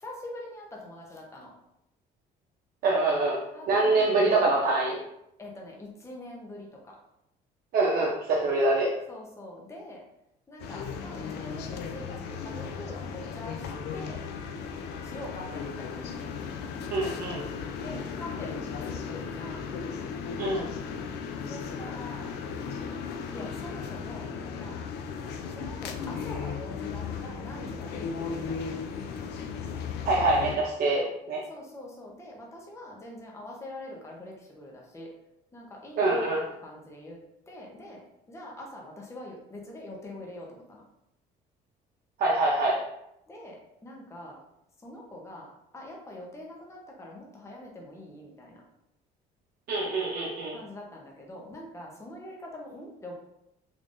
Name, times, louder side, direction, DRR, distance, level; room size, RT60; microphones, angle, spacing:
voice 1, 0.0-1.5 3.5-4.1 5.4-6.7 9.1-10.0 10.5-13.6 13.9-14.2 15.0-16.1 17.8-18.5 18.9-19.7 21.5-22.3 23.3-24.8 25.6-28.8 31.5-35.1 35.5-36.2 36.6-37.2 37.5-38.0 38.3-40.8 43.3-44.4 44.8-45.5 45.7-48.6 50.5-53.1, left 1 dB, 15° left, -2 dB, 0.8 m, -44 dB
voice 2, 2.8-3.4 3.7-5.0 7.7-8.9 16.9-17.4 20.4-20.7 30.0-31.4 36.0-36.5 42.2-42.8 49.7-50.6, right 2 dB, 60° right, -4 dB, 0.7 m, -25 dB
sound 1, 10.6-30.6, left 6 dB, 80° left, 0.5 m, -36 dB
3.4 x 3.4 x 2.6 m, 0.80 s
cardioid pair, 110°, 17 cm